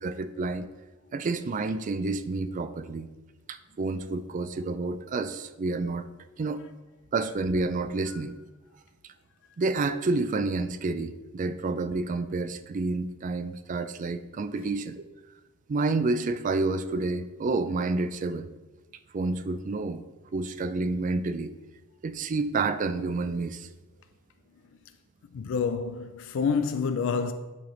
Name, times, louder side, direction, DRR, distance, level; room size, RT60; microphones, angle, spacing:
voice 1, 0.0-0.7 1.1-3.1 3.5-6.1 6.4-6.7 7.1-8.4 9.6-15.1 15.7-18.5 19.1-20.0 20.3-21.5 22.0-23.7, right 3 dB, 40° right, 0.3 m, -29 dB
voice 2, 25.3-27.3, left 5 dB, 65° left, 0.3 m, -28 dB
9.7 x 3.4 x 3.8 m
head